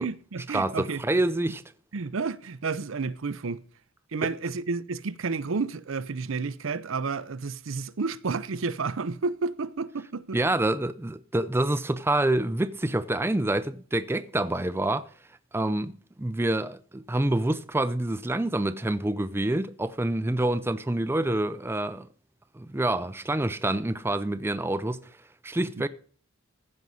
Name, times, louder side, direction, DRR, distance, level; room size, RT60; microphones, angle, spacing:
voice 1, 0.0-1.0 1.9-3.6 4.1-10.4 25.6-25.8, right 4 dB, 70° right, 0.6 m, -31 dB
voice 2, 0.5-1.6 4.2-4.3 10.3-15.1 15.5-15.9 16.2-22.1 22.5-25.1 25.4-25.9, right 1 dB, 10° right, 0.5 m, -27 dB
14.5 x 5.4 x 6.2 m
head